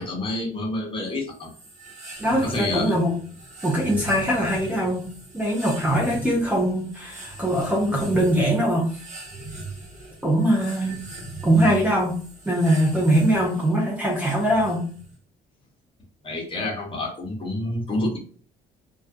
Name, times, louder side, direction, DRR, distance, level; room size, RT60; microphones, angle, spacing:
voice 1, 0.0-1.5 2.4-2.9 16.2-18.2, left 2 dB, 30° left, -1 dB, 0.9 m, -28 dB
sound 1, 1.3-15.2, right 2 dB, 45° right, 1.1 m, -39 dB
voice 2, 2.2-3.1 3.6-5.0 5.3-8.9 10.2-11.0 11.4-12.2 12.5-14.9, right 1 dB, 10° right, -2 dB, 0.6 m, -22 dB
2.4 x 2.3 x 2.6 m, 0.43 s
cardioid pair, 110°, 17 cm